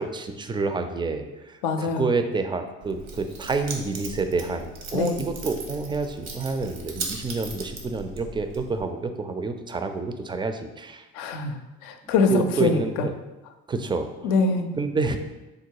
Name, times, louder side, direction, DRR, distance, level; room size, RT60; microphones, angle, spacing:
voice 1, 0.0-11.1 12.2-13.1 13.7-14.3 14.7-15.2, right 4 dB, 15° right, 7 dB, 0.3 m, -28 dB
voice 2, 1.6-2.1 4.9-5.2 11.1-13.1 14.2-14.7, left 4 dB, 80° left, 6 dB, 0.5 m, -24 dB
Keys jangling, 2.8-8.8, right 3 dB, 80° right, 0.9 m, -38 dB
3.8 x 2.2 x 4.5 m, 1.1 s
supercardioid pair, 65°, 32 cm